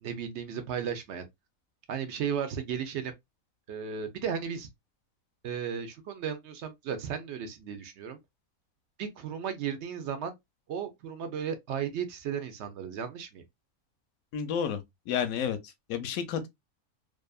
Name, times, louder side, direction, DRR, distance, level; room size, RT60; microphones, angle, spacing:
voice 1, 0.0-1.3 1.9-3.1 3.7-4.7 5.4-8.2 9.0-10.3 10.7-13.4, right 7 dB, 65° right, 0.7 m, -35 dB
voice 2, 14.3-14.8 15.1-15.6 15.9-16.5, left 8 dB, 80° left, 1.0 m, -30 dB
2.7 x 2.4 x 2.2 m
omnidirectional pair, 1.5 m